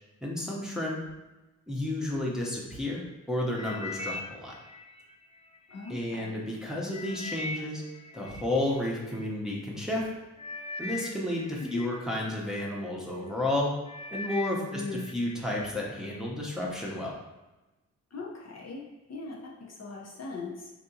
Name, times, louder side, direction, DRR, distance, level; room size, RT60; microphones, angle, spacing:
voice 1, 0.2-1.0 1.7-4.6 5.9-7.8 8.1-10.1 10.8-13.8 14.1-17.2, left 1 dB, ahead, -4 dB, 0.9 m, -32 dB
sound 1, 3.6-5.9 6.4-9.3 10.0-10.1 10.4-12.8 13.3-13.6 13.9-15.4 15.7-16.2 16.8-16.9, left 3 dB, 20° left, 0.3 m, -41 dB
voice 2, 5.7-6.3 11.7-11.9 14.7-15.0 18.1-20.7, left 3 dB, 45° left, -3 dB, 0.8 m, -39 dB
3.4 x 2.7 x 2.8 m, 1.0 s
supercardioid pair, 50°, 36 cm